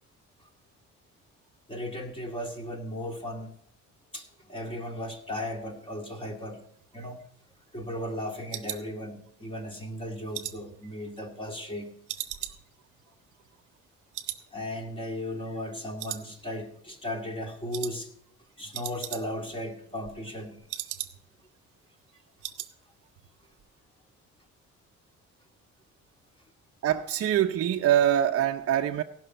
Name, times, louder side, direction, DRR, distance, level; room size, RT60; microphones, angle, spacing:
voice 1, 1.7-3.5 4.1-6.7 6.9-7.2 7.7-11.9 14.5-18.1 18.6-20.6, left 1 dB, 15° left, 2.2 m, -36 dB
sound 1, 6.8-9.6 9.9-11.7 12.1-13.9 14.1-14.5 14.8-14.9 15.3-15.7 16.0-16.8 17.1-17.3 17.7-18.0 18.3-18.4 18.6-19.6 19.9-21.5 21.8-21.9 22.1-22.7 23.0-23.3 23.6-23.7, right 13 dB, 90° right, 0.8 m, -39 dB
voice 2, 26.8-29.0, right 10 dB, 50° right, 0.6 m, -24 dB
16.5 x 6.1 x 5.5 m
cardioid pair, 90°, 30 cm